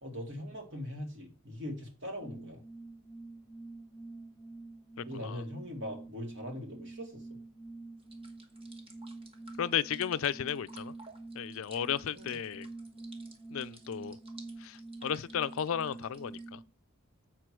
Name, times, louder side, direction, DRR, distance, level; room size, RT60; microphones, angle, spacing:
voice 1, 0.0-2.6 5.0-7.2 12.1-12.4, left 1 dB, 55° right, 2.5 m, -41 dB
sound 1, 2.2-16.7, right 2 dB, ahead, 0.3 m, -47 dB
sound 2, 8.0-16.4, right 2 dB, 25° right, 1.3 m, -56 dB
voice 2, 9.6-10.9 11.4-12.7 13.5-14.2 14.6-16.6, left 8 dB, 65° left, 0.4 m, -34 dB
7.5 x 4.6 x 6.1 m
head